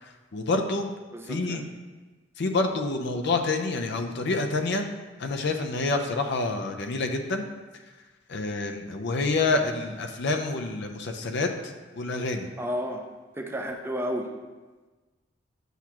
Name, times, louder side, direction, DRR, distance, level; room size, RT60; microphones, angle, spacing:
voice 1, 0.0-0.9 1.3-1.6 2.4-4.9 5.2-7.5 8.3-12.5, left 3 dB, 60° left, 5 dB, 0.6 m, -28 dB
voice 2, 1.1-1.6 12.6-13.0 13.3-14.3, equal, 10° right, 3 dB, 0.5 m, -32 dB
8.1 x 5.8 x 3.0 m, 1.3 s
head